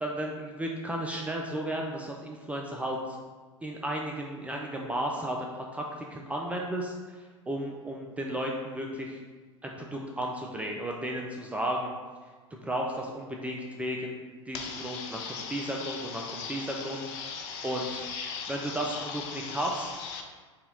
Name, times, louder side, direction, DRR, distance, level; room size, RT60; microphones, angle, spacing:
voice 1, 0.0-3.2 3.6-5.8 6.1-9.2 9.6-11.9 12.6-14.2 14.5-18.0 18.5-19.9, right 1 dB, 10° right, -1 dB, 0.3 m, -34 dB
voice 2, 14.5-20.2, left 6 dB, 45° left, 2 dB, 0.7 m, -39 dB
4.1 x 2.8 x 3.8 m, 1.4 s
figure-of-eight pair, 90°, 16 cm